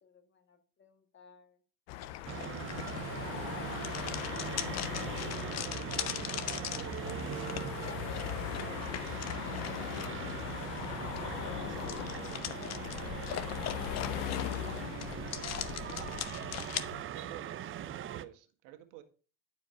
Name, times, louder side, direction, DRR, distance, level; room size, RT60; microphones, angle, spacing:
voice 1, 0.0-1.6 3.1-4.2 5.8-6.8 7.4-9.5 10.6-12.8, left 6 dB, 30° left, 2.0 m, -58 dB
sound 1, 1.9-17.0, left 15 dB, 90° left, 0.7 m, -40 dB
sound 2, 1.9-16.8, left 10 dB, 45° left, 1.0 m, -42 dB
sound 3, 2.3-18.3, right 10 dB, 35° right, 0.6 m, -41 dB
voice 2, 10.0-11.1 11.8-12.4 17.3-19.0, right 13 dB, 85° right, 1.7 m, -53 dB
11.0 x 5.1 x 5.0 m
supercardioid pair, 105°, 35 cm